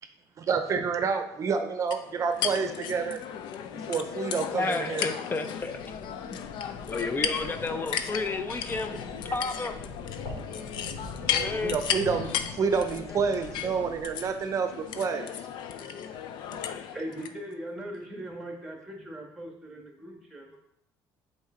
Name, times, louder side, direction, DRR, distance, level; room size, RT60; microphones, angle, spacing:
voice 1, 0.4-3.2 3.9-5.1 10.6-10.7 11.3-15.3 16.5-16.6, right 5 dB, 40° right, 8 dB, 0.7 m, -29 dB
sound 1, 1.9-17.3, left 9 dB, 65° left, 0.5 m, -35 dB
voice 2, 4.5-5.8 6.3-6.4 6.9-9.8 11.2-11.8, left 3 dB, 25° left, 9 dB, 0.6 m, -32 dB
sound 2, 5.3-14.6, left 3 dB, 50° left, 2.7 m, -43 dB
voice 3, 16.9-20.6, right 1 dB, 5° right, 0 dB, 1.6 m, -40 dB
7.2 x 4.3 x 3.8 m, 0.78 s
cardioid pair, 115°, 8 cm